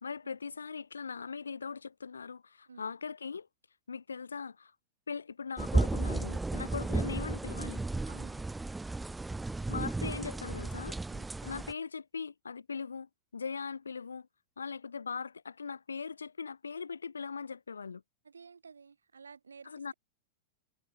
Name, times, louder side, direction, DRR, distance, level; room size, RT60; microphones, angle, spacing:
voice 1, 0.0-3.5 3.9-4.7 5.1-7.9 9.7-11.0 11.4-14.3 14.6-18.0 19.6-19.9, left 5 dB, 85° left, 1.1 m, -40 dB
sound 1, 5.6-11.7, right 2 dB, 10° right, 0.3 m, -33 dB
voice 2, 6.5-6.9 8.1-8.4 11.1-11.3 18.2-19.9, right 5 dB, 85° right, 7.5 m, -53 dB
figure-of-eight pair, 100°, 0 cm